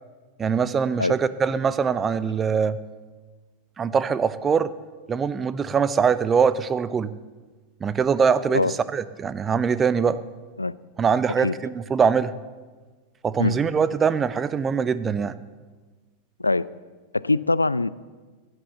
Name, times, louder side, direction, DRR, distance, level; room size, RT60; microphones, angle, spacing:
voice 1, 0.4-2.8 3.8-4.7 5.1-7.1 7.8-10.2 11.0-12.3 13.2-15.4, right 6 dB, 20° right, 15 dB, 0.6 m, -22 dB
voice 2, 17.1-17.9, left 3 dB, 80° left, 19 dB, 0.4 m, -22 dB
16.0 x 11.0 x 6.9 m, 1.3 s
figure-of-eight pair, 90°, 0 cm